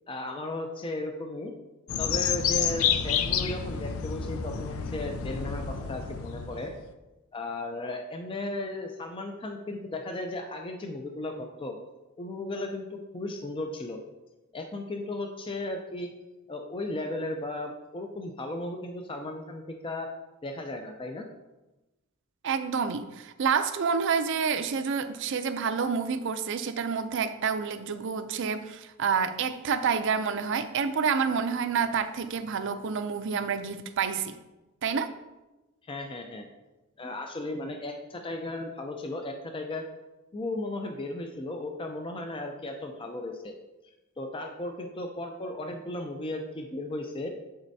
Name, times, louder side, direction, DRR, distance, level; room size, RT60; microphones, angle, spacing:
voice 1, 0.1-1.5 2.0-6.7 7.3-11.8 12.2-14.0 14.5-16.1 16.5-20.1 20.4-21.3 35.8-36.5 37.0-39.9 40.3-43.5 44.2-47.3, left 2 dB, 25° left, 3 dB, 0.5 m, -35 dB
sound 1, 1.9-6.9, left 7 dB, 80° left, 0.5 m, -29 dB
voice 2, 22.4-34.4 34.8-35.1, right 6 dB, 60° right, 10 dB, 0.5 m, -28 dB
11.5 x 4.2 x 2.7 m, 1.1 s
head